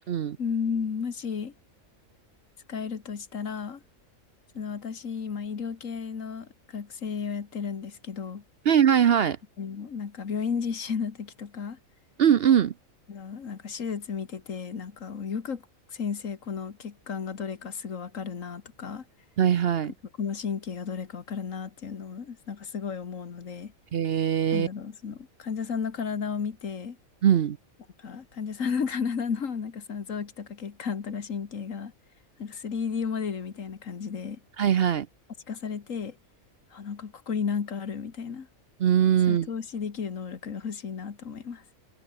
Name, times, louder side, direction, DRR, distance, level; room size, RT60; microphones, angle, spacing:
voice 1, 0.4-1.5 2.7-3.8 4.6-8.4 9.6-11.8 13.1-15.6 15.9-19.0 20.2-23.7 24.5-27.0 28.0-31.9 32.4-34.4 35.5-36.2 36.7-38.5 39.3-41.6, left 6 dB, 70° left, 2.0 m, -33 dB
voice 2, 8.6-9.4 12.2-12.7 19.4-19.9 23.9-24.7 27.2-27.6 34.6-35.1 38.8-39.5, right 9 dB, 55° right, 0.8 m, -21 dB
omnidirectional pair, 1.4 m